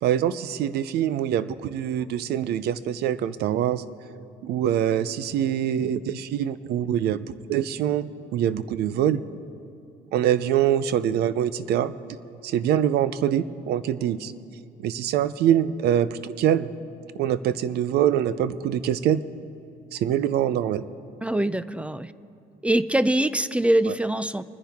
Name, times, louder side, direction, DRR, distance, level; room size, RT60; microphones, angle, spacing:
voice 1, 0.0-3.8 4.4-9.2 10.1-11.9 12.4-14.3 14.8-16.7 17.2-19.2 19.9-20.8, right 10 dB, 75° right, 15 dB, 0.6 m, -24 dB
voice 2, 21.2-22.1 22.6-24.4, right 1 dB, 5° right, 15 dB, 0.3 m, -23 dB
24.5 x 10.0 x 3.6 m, 2.5 s
cardioid pair, 110°, 17 cm